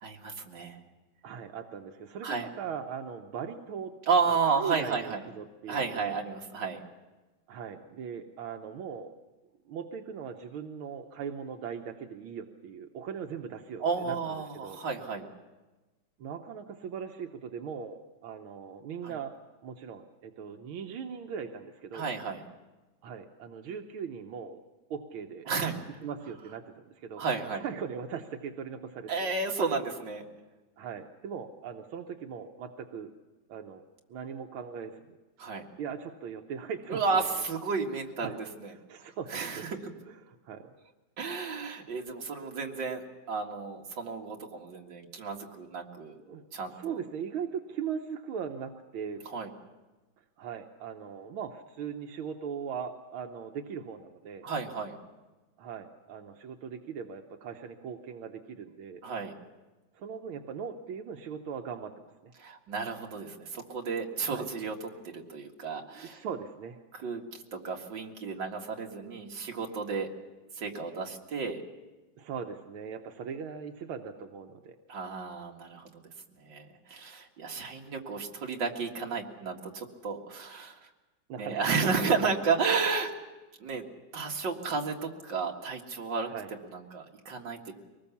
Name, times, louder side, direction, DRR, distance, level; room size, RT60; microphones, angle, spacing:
voice 1, 0.0-0.8 2.2-2.5 4.1-5.2 5.7-6.8 13.8-15.3 19.0-19.1 21.9-22.4 25.5-25.8 27.2-27.6 29.1-30.2 35.4-35.6 36.9-38.3 38.6-38.7 39.0-39.7 41.2-46.2 46.5-47.0 49.3-49.5 54.4-54.9 59.0-59.3 62.4-66.2 66.9-70.1 70.6-71.6 74.9-76.1 76.4-80.9 81.4-83.1 83.6-83.8 84.1-86.3 86.6-87.7, right 5 dB, 60° right, 1 dB, 2.6 m, -32 dB
voice 2, 1.2-3.9 4.3-6.2 7.5-9.2 9.7-14.8 16.2-19.4 19.6-22.1 23.0-24.6 24.9-27.2 27.5-29.3 30.8-33.1 33.5-33.8 34.1-35.2 35.8-37.0 38.2-38.4 38.7-39.7 40.1-40.7 46.2-46.4 46.8-49.2 50.4-54.5 55.6-59.0 59.9-62.3 64.3-64.5 65.8-66.8 72.2-74.8 81.3-82.3 86.2-86.5, right 7 dB, 85° right, 4 dB, 1.8 m, -39 dB
24.0 x 19.5 x 7.1 m, 1.2 s
omnidirectional pair, 2.2 m